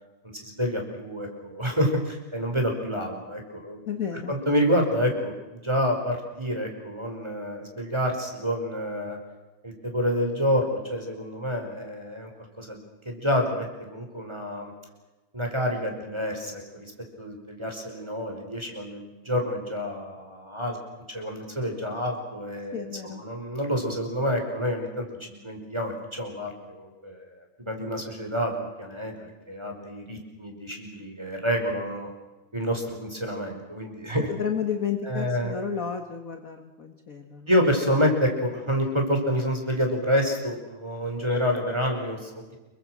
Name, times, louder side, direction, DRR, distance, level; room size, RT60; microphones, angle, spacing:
voice 1, 0.3-3.8 4.3-9.2 9.6-12.3 12.6-14.7 15.3-16.9 17.2-20.8 21.1-32.1 32.5-34.3 35.0-35.5 37.5-42.6, equal, 10° right, 3 dB, 5.0 m, -28 dB
voice 2, 3.9-4.3 22.7-23.2 34.2-37.5, left 7 dB, 40° left, 6 dB, 1.3 m, -32 dB
28.5 x 24.0 x 6.3 m, 1.1 s
omnidirectional pair, 3.6 m